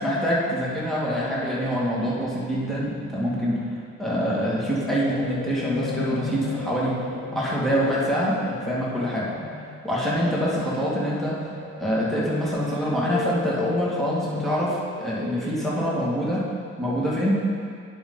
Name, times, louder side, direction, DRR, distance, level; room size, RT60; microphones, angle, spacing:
voice 1, 0.0-3.6 4.0-7.0 7.3-9.3 9.8-11.4 11.8-16.4 16.8-17.4, equal, ahead, -7 dB, 2.3 m, -25 dB
sound 1, 4.8-16.1, left 4 dB, 65° left, 1.4 m, -36 dB
10.5 x 5.5 x 4.1 m, 2.2 s
cardioid pair, 90°, 30 cm